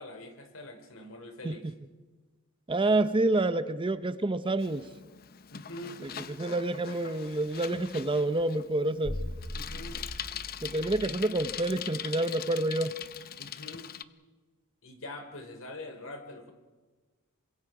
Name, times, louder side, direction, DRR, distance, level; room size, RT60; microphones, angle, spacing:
voice 1, 0.0-1.7 5.5-6.0 9.5-10.0 13.4-13.9 14.8-16.5, left 1 dB, 65° left, 6 dB, 3.1 m, -44 dB
voice 2, 2.7-4.9 6.4-9.2 10.6-12.9, right 2 dB, 25° right, 12 dB, 0.7 m, -28 dB
Bicycle, 4.6-14.0, left 9 dB, 45° left, 0.7 m, -42 dB
sound 1, 9.0-11.5, equal, 15° left, 1.6 m, -39 dB
27.5 x 24.0 x 4.9 m, 1.3 s
head